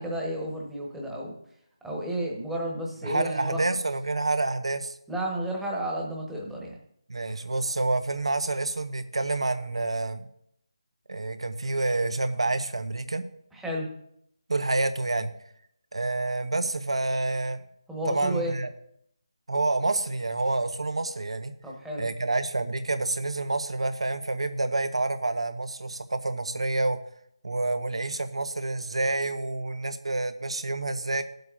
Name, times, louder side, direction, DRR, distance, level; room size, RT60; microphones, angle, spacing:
voice 1, 0.0-1.3 1.8-3.6 5.1-6.8 13.5-13.9 17.9-18.6 21.6-22.1, right 1 dB, 5° right, -3 dB, 1.2 m, -32 dB
voice 2, 3.0-5.0 7.1-10.3 11.1-13.2 14.5-15.3 15.9-17.6 18.1-18.7 19.5-21.5 22.0-27.0 27.4-31.2, right 2 dB, 90° right, 10 dB, 0.9 m, -28 dB
18.0 x 7.8 x 2.5 m, 0.72 s
figure-of-eight pair, 165°, 3 cm